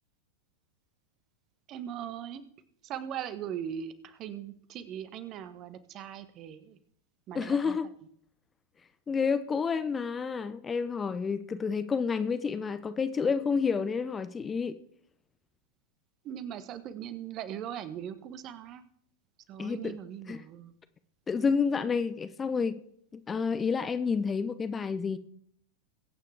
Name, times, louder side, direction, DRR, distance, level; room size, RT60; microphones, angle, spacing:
voice 1, 1.7-2.4 2.8-6.8 7.3-7.8 16.2-18.8 19.5-20.7, right 9 dB, 35° right, 1.3 m, -40 dB
voice 2, 7.3-7.9 9.1-14.8 19.6-20.0 20.3-20.4 21.3-22.8 23.3-25.2, left 5 dB, 20° left, 0.7 m, -29 dB
22.5 x 9.1 x 3.5 m
figure-of-eight pair, 90°, 0 cm